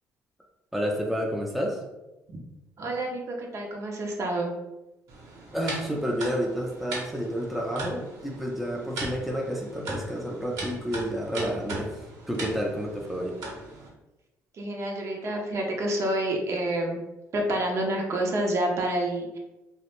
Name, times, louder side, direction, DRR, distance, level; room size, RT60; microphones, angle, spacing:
voice 1, 0.7-1.8 5.5-13.4, equal, ahead, -1 dB, 0.4 m, -30 dB
voice 2, 2.8-4.5 14.6-17.0 17.3-19.4, right 1 dB, 50° right, 0 dB, 0.6 m, -28 dB
sound 1, 5.1-13.9, right 2 dB, 80° right, 0.9 m, -39 dB
2.3 x 2.1 x 2.9 m, 1.0 s
supercardioid pair, 75°, 6 cm